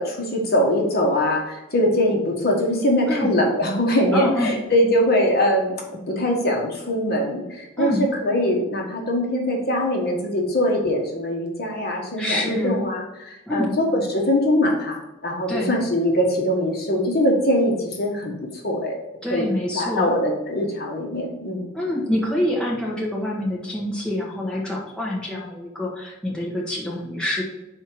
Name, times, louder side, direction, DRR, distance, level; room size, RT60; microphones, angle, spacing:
voice 1, 0.0-5.8 6.1-15.0 15.2-18.3 18.6-19.0 19.3-19.4 19.7-21.7, left 1 dB, 50° left, 0 dB, 1.3 m, -22 dB
voice 2, 3.1-3.4 4.1-4.5 7.8-8.0 12.2-12.8 13.5-13.7 15.5-15.7 19.2-20.1 21.7-27.4, left 1 dB, 5° left, -5 dB, 1.3 m, -26 dB
5.6 x 4.5 x 4.6 m, 0.97 s
head